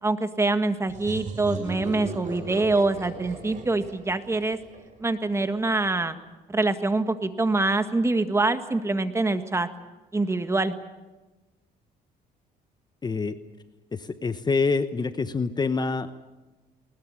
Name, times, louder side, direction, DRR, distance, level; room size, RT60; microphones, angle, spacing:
voice 1, 0.0-4.6 5.0-6.2 6.5-9.7 10.1-10.7, right 2 dB, 15° right, 9 dB, 1.7 m, -25 dB
sound 1, 0.9-5.4, right 4 dB, 45° right, 6.0 m, -38 dB
voice 2, 13.0-13.3 13.9-16.2, left 4 dB, 25° left, 11 dB, 1.0 m, -26 dB
20.5 x 20.0 x 9.8 m, 1.1 s
cardioid pair, 110°, 17 cm